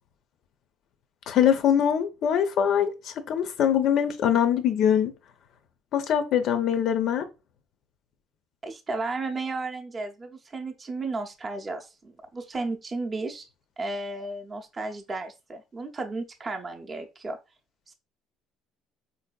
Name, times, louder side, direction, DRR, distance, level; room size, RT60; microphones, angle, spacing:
voice 1, 1.3-5.1 5.9-7.3, left 9 dB, 55° left, 0.4 m, -23 dB
voice 2, 8.6-13.5 13.8-17.4 17.9-18.0, right 3 dB, 20° right, 0.5 m, -34 dB
4.1 x 2.6 x 2.2 m
cardioid pair, 140°, 0 cm